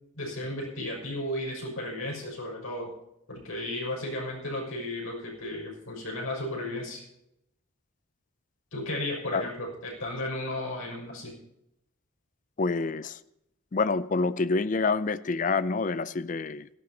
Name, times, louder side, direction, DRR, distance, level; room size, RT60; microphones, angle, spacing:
voice 1, 0.2-2.9 3.3-7.0 8.7-11.3, left 1 dB, 80° left, -2 dB, 6.1 m, -34 dB
voice 2, 12.6-13.2 13.7-16.7, left 4 dB, 40° left, 15 dB, 0.4 m, -27 dB
17.5 x 14.5 x 2.9 m, 0.81 s
head